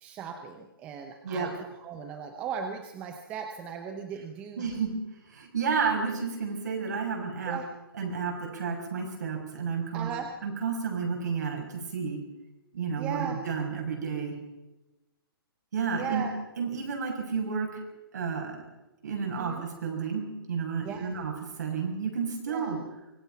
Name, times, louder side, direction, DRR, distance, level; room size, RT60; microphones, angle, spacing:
voice 1, 0.0-4.6 7.5-7.7 9.9-10.3 13.0-13.4 16.0-16.3 19.4-19.6 20.8-21.1 22.5-22.8, right 7 dB, 10° right, 5 dB, 0.8 m, -37 dB
voice 2, 4.6-4.9 5.3-7.6 7.9-10.1 10.4-12.2 12.7-14.3 15.7-16.3 16.6-17.7 18.1-18.6 19.0-21.3 21.6-22.8, right 5 dB, 50° right, 2 dB, 6.9 m, -31 dB
25.0 x 20.5 x 5.9 m, 1.0 s
hypercardioid pair, 175°, 12 cm